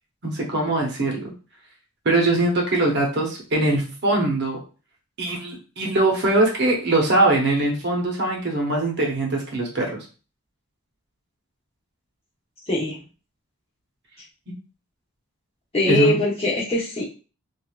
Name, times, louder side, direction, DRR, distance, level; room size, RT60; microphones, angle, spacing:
voice 1, 0.2-1.3 2.0-4.6 5.2-10.0 15.8-16.2, right 2 dB, 50° right, 0 dB, 0.8 m, -22 dB
voice 2, 12.7-13.0 15.7-17.0, left 1 dB, 25° left, -6 dB, 1.0 m, -22 dB
3.1 x 2.5 x 2.3 m, 0.35 s
head